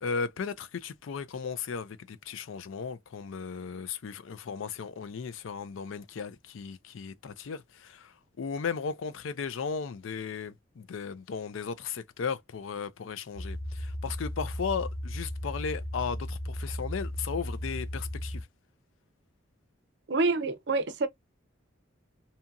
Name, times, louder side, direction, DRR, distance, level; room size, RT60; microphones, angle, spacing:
voice 1, 0.0-18.5, left 5 dB, 75° left, 0.4 m, -36 dB
sound 1, 13.3-18.4, left 1 dB, 45° left, 0.9 m, -36 dB
voice 2, 20.1-21.1, right 3 dB, 55° right, 0.5 m, -27 dB
2.8 x 2.6 x 2.2 m
head